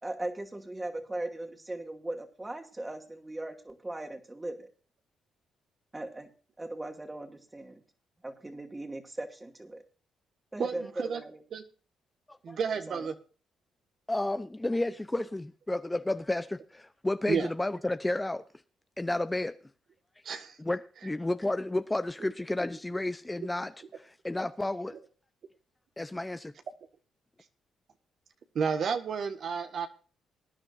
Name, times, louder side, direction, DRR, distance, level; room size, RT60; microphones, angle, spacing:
voice 1, 0.0-4.7 5.9-6.3 6.6-7.8 8.2-9.8 10.5-11.4 12.9-13.1, right 2 dB, 15° right, 2.4 m, -38 dB
voice 2, 10.6-11.2 11.5-11.6 12.4-13.1 17.3-17.5 20.2-20.6 28.5-29.9, right 6 dB, 60° right, 1.6 m, -31 dB
voice 3, 14.1-18.4 19.0-19.5 20.6-24.9 26.0-26.5, left 2 dB, 10° left, 0.7 m, -32 dB
21.0 x 10.0 x 2.6 m
cardioid pair, 90°, 0 cm